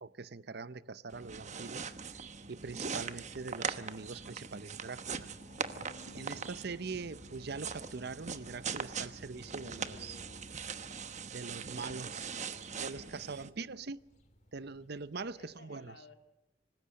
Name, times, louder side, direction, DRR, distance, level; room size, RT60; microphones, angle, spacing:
voice 1, 0.0-2.2 2.5-5.3 6.1-10.2 11.3-12.2 12.7-14.0 14.5-16.0, right 4 dB, 60° right, 0.7 m, -43 dB
sound 1, 1.1-13.5, right 6 dB, 40° right, 1.1 m, -41 dB
sound 2, 1.8-15.6, left 1 dB, 40° left, 3.0 m, -58 dB
voice 2, 11.8-12.6 13.0-13.5 15.1-16.1, left 3 dB, 75° left, 3.1 m, -58 dB
25.5 x 19.5 x 6.5 m
head